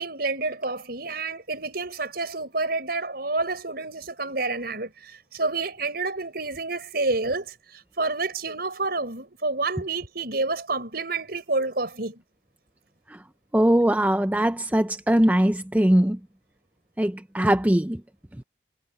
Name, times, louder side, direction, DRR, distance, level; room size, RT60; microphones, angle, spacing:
voice 1, 0.0-12.2, right 3 dB, 55° right, 6.0 m, -29 dB
voice 2, 13.5-16.2 17.0-18.0 18.4-18.5, right 1 dB, 10° right, 0.5 m, -21 dB
head